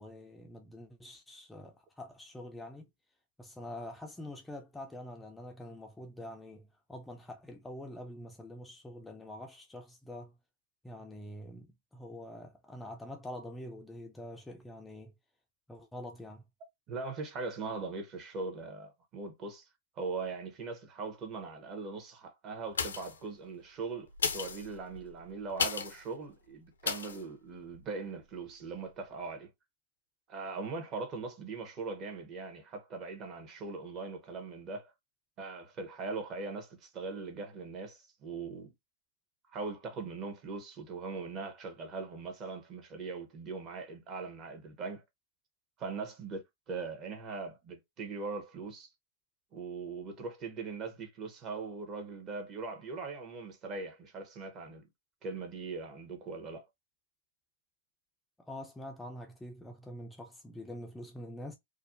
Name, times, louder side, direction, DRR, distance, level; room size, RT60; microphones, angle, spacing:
voice 1, 0.0-2.9 3.4-10.3 10.8-15.1 15.7-16.4 58.4-61.6, left 1 dB, 5° left, 0.3 m, -45 dB
voice 2, 16.9-19.7 20.0-29.5 30.3-34.9 35.4-38.7 39.5-45.0 45.8-48.9 49.5-54.8 55.2-56.7, right 4 dB, 35° right, 0.8 m, -40 dB
sound 1, 22.7-23.3 24.1-26.0 26.8-27.2 27.7-27.8, left 6 dB, 85° left, 0.5 m, -34 dB
2.4 x 2.1 x 2.4 m
hypercardioid pair, 115°, 0 cm